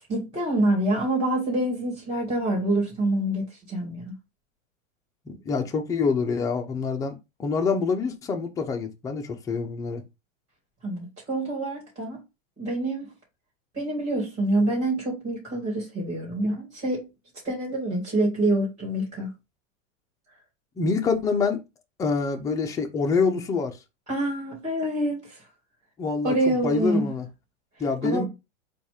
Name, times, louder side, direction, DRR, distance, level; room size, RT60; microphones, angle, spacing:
voice 1, 0.1-4.1 10.8-12.2 12.6-13.1 13.7-17.1 17.4-19.3 24.1-25.4 26.2-27.1 28.0-28.3, right 1 dB, 15° right, 2.3 m, -26 dB
voice 2, 5.3-10.0 20.8-21.6 22.0-23.8 26.0-27.3 27.8-28.3, left 4 dB, 10° left, 0.4 m, -26 dB
4.2 x 2.4 x 4.7 m
hypercardioid pair, 130°, 40 cm